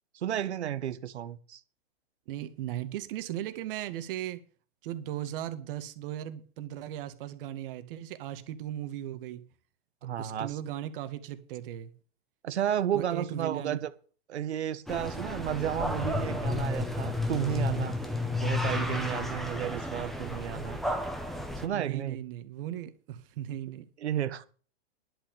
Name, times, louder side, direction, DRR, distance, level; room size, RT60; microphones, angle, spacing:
voice 1, 0.1-1.6 10.0-10.5 12.4-13.9 14.3-18.0 18.4-20.8 21.6-22.2 24.0-24.5, right 10 dB, 85° right, 1.5 m, -32 dB
voice 2, 2.3-4.4 4.8-9.4 10.2-11.9 12.9-13.8 21.7-23.9, right 12 dB, 55° right, 2.0 m, -37 dB
sound 1, 14.9-21.7, left 2 dB, ahead, 1.6 m, -32 dB
11.0 x 6.4 x 8.8 m
hypercardioid pair, 135°, 32 cm